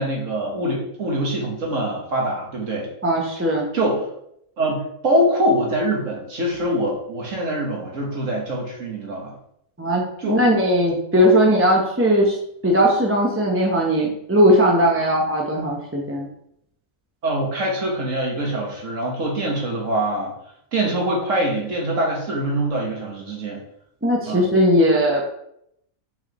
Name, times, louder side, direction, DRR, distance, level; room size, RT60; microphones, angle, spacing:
voice 1, 0.0-2.9 3.7-4.1 4.6-9.3 10.2-10.4 11.2-11.3 17.2-20.3 20.7-23.6 24.3-24.4, right 1 dB, 60° right, -1 dB, 1.8 m, -24 dB
voice 2, 3.0-3.7 9.8-12.4 12.6-16.3 24.0-25.2, equal, 10° right, -2 dB, 0.8 m, -18 dB
5.8 x 5.5 x 3.1 m, 0.73 s
omnidirectional pair, 1.5 m